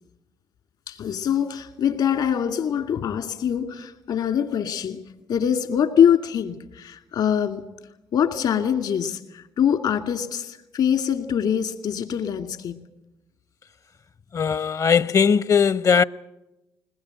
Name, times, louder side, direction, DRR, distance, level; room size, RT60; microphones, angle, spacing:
voice 1, 0.9-5.0 5.3-7.6 8.1-12.8, left 8 dB, 70° left, 2.2 m, -23 dB
voice 2, 14.3-16.0, left 6 dB, 50° left, 0.7 m, -19 dB
21.0 x 20.5 x 9.0 m
hypercardioid pair, 50°, 7 cm